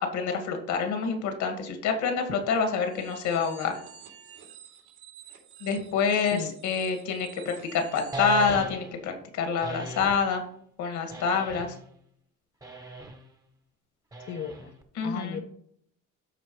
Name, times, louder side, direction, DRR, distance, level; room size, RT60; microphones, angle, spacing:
voice 1, 0.0-3.7 5.6-10.4 10.8-11.8 15.0-15.4, left 5 dB, 75° left, 5 dB, 2.1 m, -27 dB
sound 1, 2.8-8.6, right 8 dB, 70° right, 2.9 m, -49 dB
voice 2, 6.1-6.5 14.3-14.8 15.0-15.4, left 8 dB, 40° left, 5 dB, 0.7 m, -36 dB
sound 2, 8.1-9.0 9.6-10.3 11.1-11.9 12.6-13.2 14.1-14.8, right 2 dB, 10° right, 1.0 m, -37 dB
13.0 x 4.6 x 3.2 m, 0.66 s
cardioid pair, 140°, 30 cm